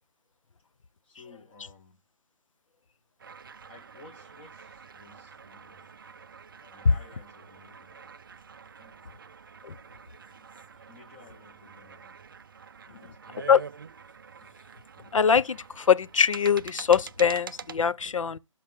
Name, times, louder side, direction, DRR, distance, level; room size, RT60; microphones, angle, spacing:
voice 1, 1.0-2.0 3.7-5.9 6.7-8.2 8.6-9.2 10.3-10.5 10.9-12.2 12.8-13.5, left 3 dB, 20° left, 1.3 m, -55 dB
sound 1, 3.2-17.8, right 6 dB, 40° right, 0.4 m, -46 dB
voice 2, 15.1-18.4, left 6 dB, 75° left, 0.7 m, -22 dB
10.5 x 6.1 x 3.5 m
hypercardioid pair, 165°, 17 cm